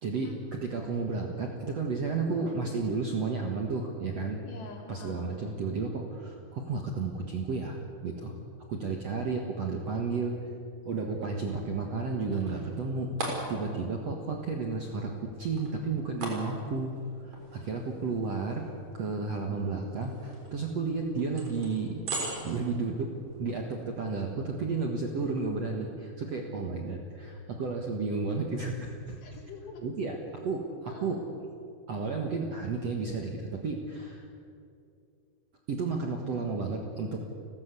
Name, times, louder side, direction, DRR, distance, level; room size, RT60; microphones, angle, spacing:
voice 1, 0.0-4.4 4.9-7.8 8.0-8.3 8.7-10.4 10.8-16.9 17.2-18.7 18.9-22.0 22.4-23.1 23.4-29.2 29.8-30.2 30.4-31.3 31.9-34.3 35.7-37.2, right 4 dB, 55° right, 2 dB, 1.8 m, -32 dB
voice 2, 4.4-5.3 19.4-19.6 29.2-29.8 30.9-31.2, left 4 dB, 75° left, 0 dB, 5.6 m, -46 dB
sound 1, 11.9-23.7, right 2 dB, 40° right, 5.0 m, -42 dB
30.0 x 14.0 x 8.3 m, 2.5 s
omnidirectional pair, 5.0 m